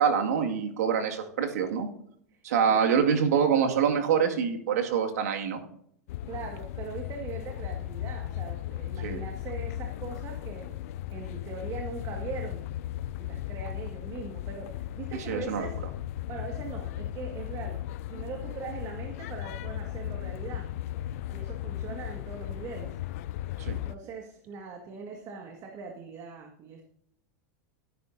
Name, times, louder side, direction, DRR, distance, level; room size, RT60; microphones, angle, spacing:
voice 1, 0.0-1.9 2.4-5.6 9.0-9.2 15.3-15.7 23.6-23.8, right 7 dB, 80° right, 3 dB, 2.1 m, -25 dB
sound 1, 6.1-24.0, left 13 dB, 65° left, 0.5 m, -36 dB
voice 2, 6.3-10.8 11.1-12.7 13.2-15.8 16.3-17.8 18.1-20.7 21.0-23.0 23.7-26.8, right 5 dB, 40° right, 2 dB, 1.9 m, -41 dB
17.0 x 10.0 x 2.7 m, 0.69 s
hypercardioid pair, 115°, 8 cm